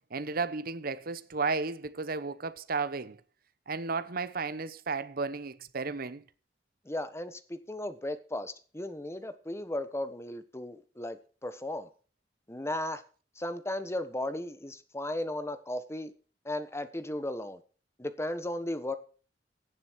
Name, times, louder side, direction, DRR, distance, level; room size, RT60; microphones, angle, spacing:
voice 1, 0.1-3.2 3.7-6.2, right 4 dB, 55° right, 0.9 m, -33 dB
voice 2, 6.8-11.9 12.5-13.0 13.4-16.1 16.4-17.6 18.0-18.9, left 1 dB, 15° left, 1.3 m, -35 dB
16.5 x 7.5 x 4.7 m
head